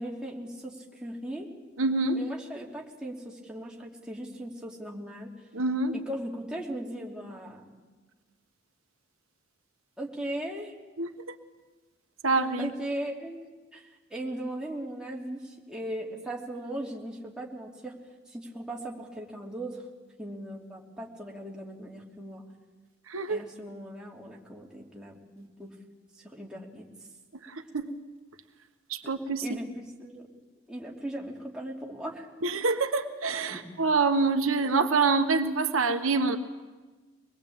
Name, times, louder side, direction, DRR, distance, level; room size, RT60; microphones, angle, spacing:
voice 1, 0.0-1.5 2.1-5.3 5.9-7.8 10.0-10.7 12.6-13.4 13.7-17.9 18.3-19.8 20.2-22.4 23.3-25.7 26.2-26.9 29.0-29.1 29.4-30.3 30.7-32.3 33.5-33.6, right 1 dB, 5° right, -2 dB, 3.1 m, -38 dB
voice 2, 1.8-2.2 5.5-5.9 11.0-11.1 12.2-12.7 23.1-23.4 27.5-27.9 28.9-29.4 32.4-36.4, right 4 dB, 80° right, 7 dB, 1.3 m, -26 dB
24.5 x 20.5 x 8.7 m, 1.3 s
head